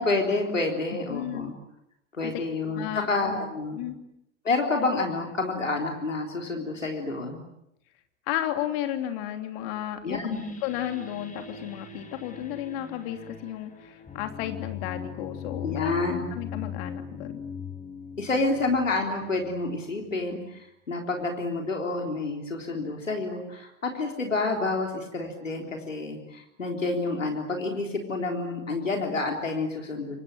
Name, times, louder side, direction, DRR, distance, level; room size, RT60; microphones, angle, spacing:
voice 1, 0.0-1.5 2.2-3.8 4.4-7.4 10.0-10.4 15.6-16.2 18.2-30.2, left 3 dB, 80° left, 2 dB, 3.8 m, -29 dB
voice 2, 1.1-1.5 2.2-2.3 2.7-3.1 3.7-4.0 8.3-10.2 10.6-17.4, left 12 dB, 50° left, 6 dB, 3.1 m, -33 dB
sound 1, 10.3-19.7, left 7 dB, 20° left, 6.7 m, -40 dB
29.5 x 24.5 x 7.7 m, 0.81 s
figure-of-eight pair, 80°, 38 cm